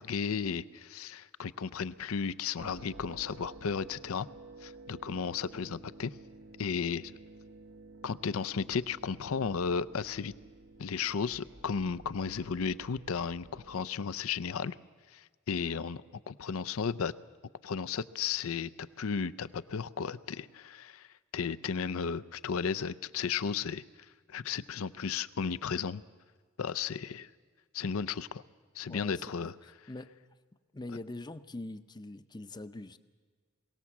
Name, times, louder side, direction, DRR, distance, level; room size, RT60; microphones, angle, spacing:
voice 1, 0.0-4.3 4.6-6.2 6.6-7.1 8.0-10.3 10.8-14.8 15.1-16.0 16.3-17.1 17.6-21.1 21.3-23.8 24.3-26.0 26.6-27.3 27.7-28.4 28.8-29.5, left 6 dB, 85° left, 15 dB, 0.5 m, -34 dB
sound 1, 2.6-13.8, right 2 dB, 60° right, 0.8 m, -52 dB
voice 2, 28.9-29.5 29.9-30.1 30.7-33.0, left 2 dB, 20° left, 12 dB, 0.6 m, -43 dB
22.5 x 18.0 x 7.2 m, 1.5 s
head